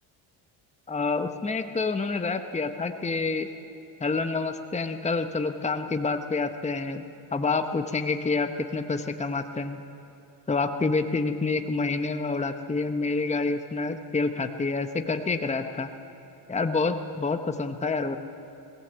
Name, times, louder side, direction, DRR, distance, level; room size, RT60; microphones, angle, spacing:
voice 1, 0.9-3.5 4.0-7.0 7.3-9.8 10.5-15.9 16.5-18.2, left 3 dB, 15° left, 7 dB, 1.0 m, -28 dB
20.5 x 16.5 x 8.1 m, 3.0 s
cardioid pair, 90°, 47 cm